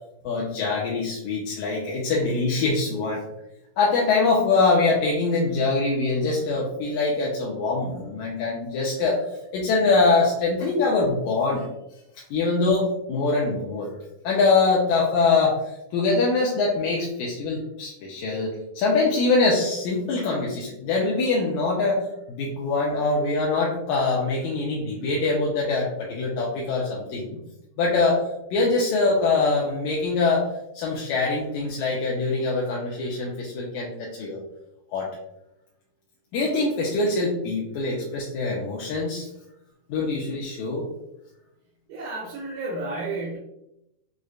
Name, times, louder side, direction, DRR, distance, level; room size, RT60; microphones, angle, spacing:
voice 1, 0.2-3.2 3.8-9.2 9.5-11.7 12.3-13.9 14.2-27.4 27.8-30.5 30.7-34.4 34.9-35.1 36.3-39.3 39.9-40.9, left 3 dB, 80° left, -3 dB, 2.0 m, -23 dB
voice 2, 41.9-43.4, right 2 dB, 85° right, -3 dB, 2.3 m, -31 dB
6.4 x 2.1 x 2.4 m, 0.87 s
omnidirectional pair, 3.5 m